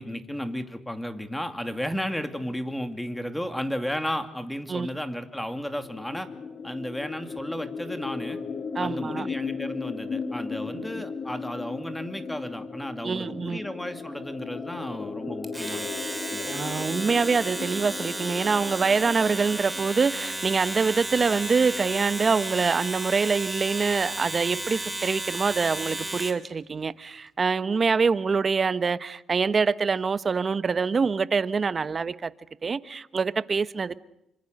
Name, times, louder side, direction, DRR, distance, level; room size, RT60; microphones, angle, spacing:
voice 1, 0.0-6.3 6.6-8.4 8.8-15.9 16.3-16.5, equal, 5° left, 2.6 m, -33 dB
sound 1, 5.7-21.4, left 5 dB, 50° left, 2.7 m, -36 dB
voice 2, 8.7-9.3 10.7-10.9 13.0-13.6 16.5-32.3 32.6-34.0, right 5 dB, 40° right, 1.0 m, -25 dB
Domestic sounds home sounds, 15.4-26.5, right 1 dB, 10° right, 3.3 m, -33 dB
27.5 x 25.5 x 6.6 m
cardioid pair, 90°, 0 cm